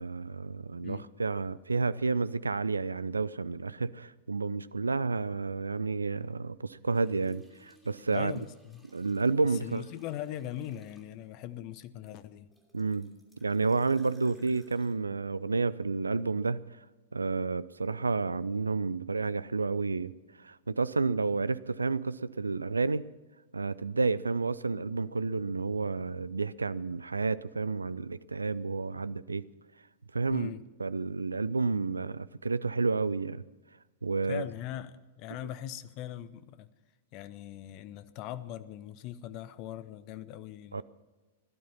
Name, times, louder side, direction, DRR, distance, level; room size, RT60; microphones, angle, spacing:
voice 1, 0.0-8.3 8.9-9.8 12.7-13.1 13.4-16.6 17.1-20.1 20.4-23.1 23.5-29.4 30.1-30.5 30.8-33.4 34.0-34.4 40.7-40.8, right 4 dB, 75° right, 0.5 m, -30 dB
sound 1, 6.9-11.3 12.0-14.9, left 1 dB, 5° left, 2.9 m, -62 dB
voice 2, 8.1-8.8 9.6-12.5 30.3-30.6 34.3-36.7 37.1-40.8, left 12 dB, 40° left, 0.9 m, -40 dB
17.5 x 12.5 x 5.6 m
figure-of-eight pair, 100°, 0 cm